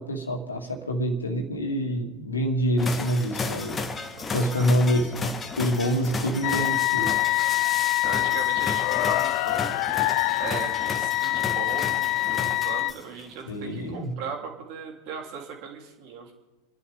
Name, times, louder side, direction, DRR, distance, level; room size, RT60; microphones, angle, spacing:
voice 1, 0.0-3.8 4.3-7.1 13.5-14.1, equal, 75° left, 3 dB, 2.5 m, -26 dB
sound 1, 2.8-13.2, left 3 dB, 20° left, 1.3 m, -34 dB
voice 2, 4.1-4.7 8.0-9.8 10.4-16.3, right 6 dB, 45° right, 0 dB, 3.3 m, -38 dB
sound 2, 6.4-12.9, left 19 dB, 45° left, 0.4 m, -25 dB
29.0 x 11.0 x 3.6 m, 1.2 s
figure-of-eight pair, 90°, 0 cm